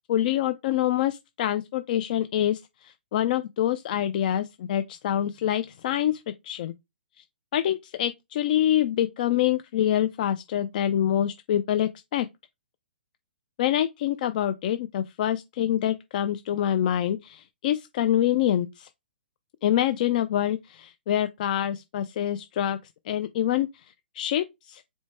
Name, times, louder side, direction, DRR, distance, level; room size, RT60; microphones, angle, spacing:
voice 1, 0.1-6.7 7.2-7.3 7.5-12.3 13.6-18.9 19.6-22.8 23.1-23.7 24.1-24.8, left 11 dB, 50° left, 0.4 m, -26 dB
4.4 x 2.2 x 4.3 m
hypercardioid pair, 135°, 6 cm